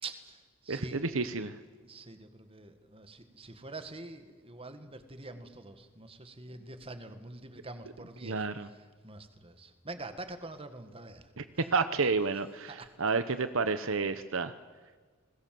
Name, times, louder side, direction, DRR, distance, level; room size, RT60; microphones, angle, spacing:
voice 1, 0.0-1.0 1.8-8.5 9.0-11.2 12.7-12.9, right 2 dB, 25° right, 9 dB, 1.8 m, -45 dB
voice 2, 0.7-1.6 8.2-8.7 11.4-11.5 11.7-14.5, right 4 dB, 60° right, 11 dB, 1.0 m, -30 dB
30.0 x 20.5 x 7.8 m, 1.4 s
head